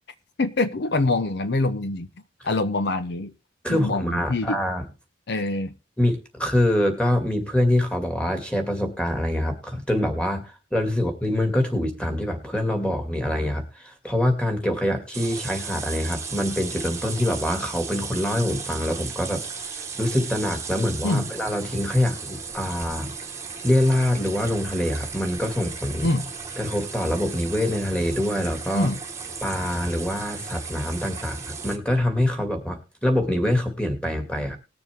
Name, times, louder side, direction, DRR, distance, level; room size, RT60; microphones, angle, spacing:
voice 1, 0.4-2.1 2.4-3.3 3.7-4.6 5.3-5.7 21.0-21.3 26.0-26.3 28.7-29.0, left 2 dB, 60° left, 0.7 m, -24 dB
voice 2, 3.6-4.8 6.0-19.4 19.7-23.1 23.6-26.1 26.6-28.9 29.4-34.6, left 1 dB, 5° left, 2.2 m, -25 dB
sound 1, 15.1-31.8, right 5 dB, 15° right, 1.3 m, -36 dB
20.0 x 6.9 x 3.5 m
head